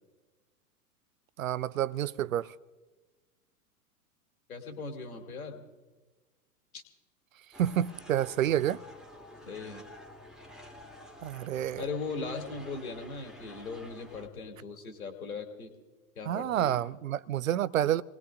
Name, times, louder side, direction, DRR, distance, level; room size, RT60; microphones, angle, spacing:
voice 1, 1.4-2.5 7.6-8.8 11.2-11.8 16.3-18.0, right 11 dB, 60° right, 0.5 m, -29 dB
voice 2, 4.5-5.6 6.7-6.8 9.4-9.9 11.7-15.7 16.2-16.8, left 4 dB, 65° left, 2.8 m, -39 dB
sound 1, 7.5-14.3, left 1 dB, ahead, 1.9 m, -50 dB
28.0 x 19.5 x 2.5 m
figure-of-eight pair, 95°, 46 cm